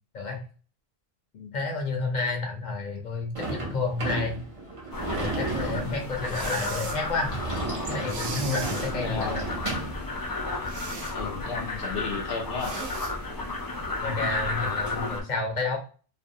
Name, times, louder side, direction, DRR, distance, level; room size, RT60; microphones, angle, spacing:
voice 1, 1.5-4.4 5.2-7.4 7.9-9.4 14.0-15.8, left 3 dB, 50° left, 2 dB, 0.7 m, -30 dB
Sliding door / Slam, 3.4-10.0, right 2 dB, 35° right, 0.7 m, -33 dB
sound 1, 4.9-15.2, left 2 dB, 35° left, 0.3 m, -33 dB
sound 2, 6.2-7.0 8.0-8.9 10.7-11.2 12.6-13.1, right 4 dB, 85° right, 0.9 m, -37 dB
voice 2, 9.0-9.5 11.1-12.8, left 4 dB, 75° left, 1 dB, 0.9 m, -33 dB
2.6 x 2.1 x 2.6 m, 0.38 s
omnidirectional pair, 1.1 m